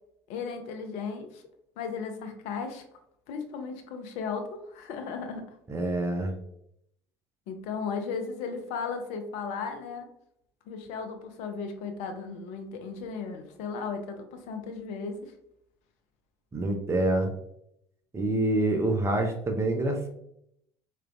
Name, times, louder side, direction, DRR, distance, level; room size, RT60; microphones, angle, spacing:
voice 1, 0.3-1.4 1.8-2.8 3.3-5.6 7.5-10.1 10.7-15.3, left 5 dB, 55° left, 6 dB, 0.6 m, -35 dB
voice 2, 5.7-6.3 16.5-17.3 18.1-20.1, right 2 dB, 20° right, 3 dB, 0.5 m, -26 dB
4.5 x 2.4 x 2.3 m, 0.74 s
figure-of-eight pair, 60°, 15 cm